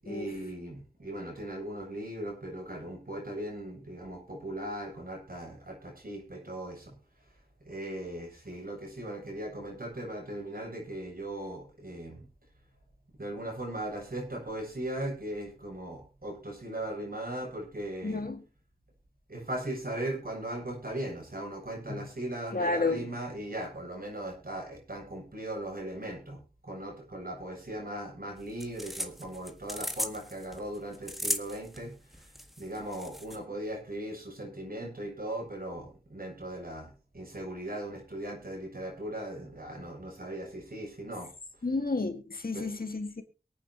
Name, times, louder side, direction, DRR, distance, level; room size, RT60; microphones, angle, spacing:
voice 1, 0.0-6.9 7.6-12.2 13.2-18.3 19.3-31.9 32.6-41.3 42.5-42.7, right 1 dB, 70° right, 7.5 m, -38 dB
voice 2, 18.0-18.4 21.9-22.0 22.5-23.1 41.6-43.2, left 3 dB, 70° left, 1.9 m, -31 dB
Peling Carrots, 28.4-33.4, equal, ahead, 1.7 m, -37 dB
23.0 x 9.2 x 3.0 m
wide cardioid pair, 40°, 16 cm